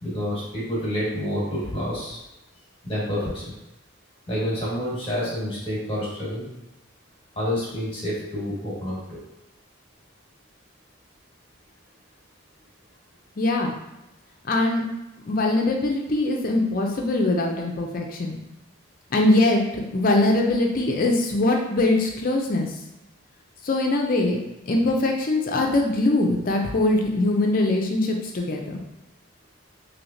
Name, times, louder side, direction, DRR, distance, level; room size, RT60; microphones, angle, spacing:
voice 1, 0.0-2.2 2.8-3.4 4.3-6.5 7.4-9.0, equal, 25° left, -6 dB, 1.3 m, -28 dB
voice 2, 13.4-13.8 14.4-14.8 15.3-18.4 19.1-22.7 23.6-28.8, left 2 dB, 45° left, 1 dB, 0.5 m, -22 dB
3.2 x 2.7 x 2.7 m, 0.94 s
head